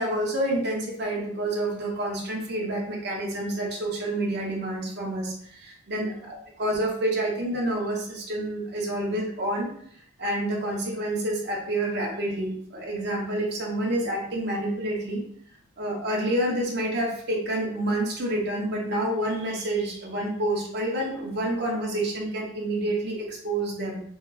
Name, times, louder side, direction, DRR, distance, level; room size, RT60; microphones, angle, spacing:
voice 1, 0.0-9.7 10.2-15.2 15.8-24.0, right 1 dB, 50° right, -2 dB, 1.0 m, -28 dB
6.1 x 2.1 x 2.5 m, 0.64 s
head